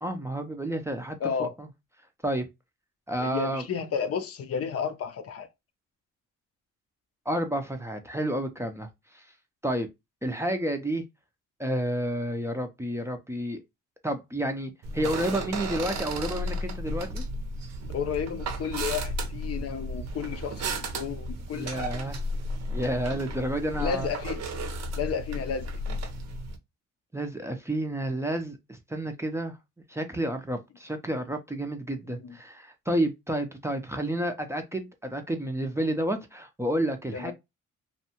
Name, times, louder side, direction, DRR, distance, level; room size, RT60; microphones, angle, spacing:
voice 1, 0.0-1.7 2.2-2.5 3.1-3.6 7.3-8.9 9.1-9.2 9.6-9.9 10.2-11.0 11.6-13.6 14.0-17.2 21.5-22.2 22.7-24.1 27.1-29.6 29.9-37.3, right 1 dB, 10° right, 0.5 m, -30 dB
voice 2, 1.2-1.5 3.2-5.5 17.9-21.9 23.8-24.4 24.9-26.0 32.1-32.4 37.1-37.3, left 7 dB, 50° left, 0.5 m, -32 dB
sound 1, 14.8-26.6, right 1 dB, 60° right, 0.7 m, -34 dB
2.6 x 2.2 x 2.8 m
cardioid pair, 90°, 30 cm